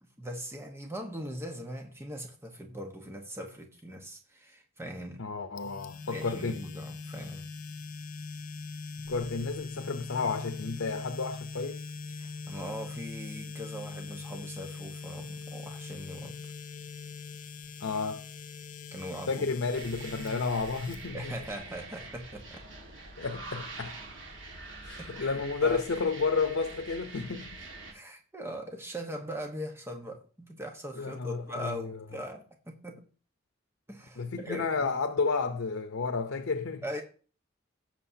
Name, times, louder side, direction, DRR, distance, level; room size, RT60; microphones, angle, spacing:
voice 1, 0.0-5.3 6.1-7.5 12.2-16.4 18.9-19.5 21.1-22.6 25.0-25.8 27.9-33.1 33.9-34.9 36.8-37.0, equal, 15° right, 1.2 m, -41 dB
voice 2, 5.2-6.6 9.1-11.8 17.8-18.2 19.3-21.3 23.2-24.0 24.8-27.6 31.0-32.0 34.2-36.8, left 4 dB, 85° left, 0.7 m, -31 dB
sound 1, 5.6-21.5, left 4 dB, 40° left, 0.6 m, -42 dB
sound 2, 19.7-27.9, right 3 dB, 65° right, 1.9 m, -45 dB
17.0 x 6.6 x 2.8 m
head